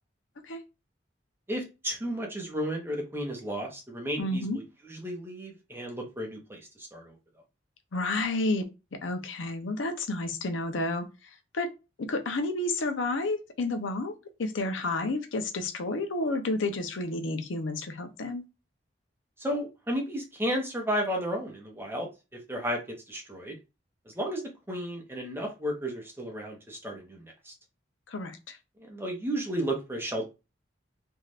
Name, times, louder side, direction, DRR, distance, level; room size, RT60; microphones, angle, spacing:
voice 1, 1.5-7.1 19.4-22.8 23.1-23.5 24.1-24.4 24.7-27.5 28.8-30.3, equal, 10° right, 1 dB, 0.8 m, -33 dB
voice 2, 4.2-4.6 7.9-8.6 9.0-11.1 11.5-11.7 12.0-14.1 14.4-18.4 28.1-28.6, left 2 dB, 90° left, 7 dB, 0.6 m, -30 dB
2.7 x 2.4 x 3.2 m, 0.27 s
head